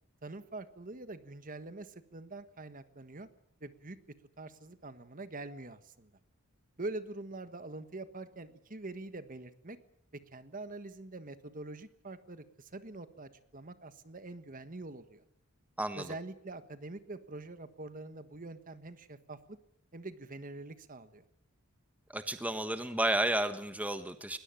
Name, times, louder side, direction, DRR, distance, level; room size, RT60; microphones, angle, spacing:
voice 1, 0.2-3.3 3.6-4.0 4.4-6.1 6.8-9.8 10.1-15.2 15.9-19.6 19.9-21.2, right 2 dB, 40° right, 11 dB, 1.4 m, -44 dB
voice 2, 15.8-16.1 22.1-24.4, right 1 dB, 5° right, 9 dB, 1.3 m, -32 dB
20.5 x 20.5 x 9.0 m, 0.72 s
head